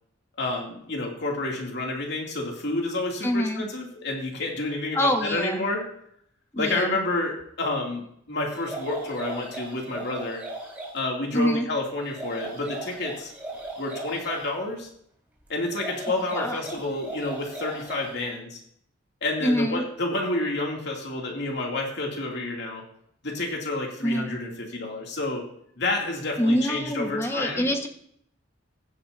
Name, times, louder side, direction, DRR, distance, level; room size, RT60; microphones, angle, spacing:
voice 1, 0.4-5.8 6.6-8.0 8.3-10.4 10.9-13.3 13.8-14.9 15.5-18.6 19.2-22.8 23.2-25.4 25.8-27.7, left 2 dB, 60° left, 0 dB, 2.6 m, -29 dB
voice 2, 3.2-3.6 4.9-5.6 6.5-7.0 11.3-11.7 16.3-16.6 19.4-19.8 24.0-24.3 26.4-27.9, equal, 15° left, 4 dB, 1.3 m, -25 dB
sound 1, 8.5-11.0 12.0-14.5 15.6-18.2, right 2 dB, 10° right, 4.3 m, -37 dB
15.5 x 10.5 x 2.7 m, 0.68 s
head